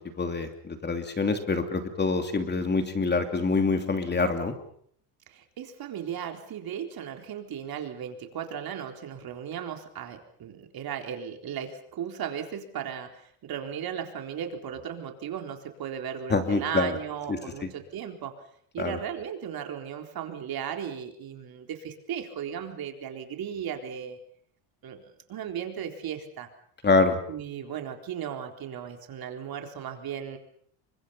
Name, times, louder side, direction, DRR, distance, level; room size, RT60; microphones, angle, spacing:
voice 1, 0.0-4.5 16.3-17.0 17.3-17.7 18.8-19.0 26.8-27.2, left 3 dB, 20° left, 6 dB, 2.8 m, -26 dB
voice 2, 5.3-18.4 18.7-24.2 24.8-26.5 27.3-30.4, right 8 dB, 45° right, 4 dB, 4.1 m, -36 dB
29.0 x 24.0 x 5.7 m, 0.63 s
cardioid pair, 125°, 49 cm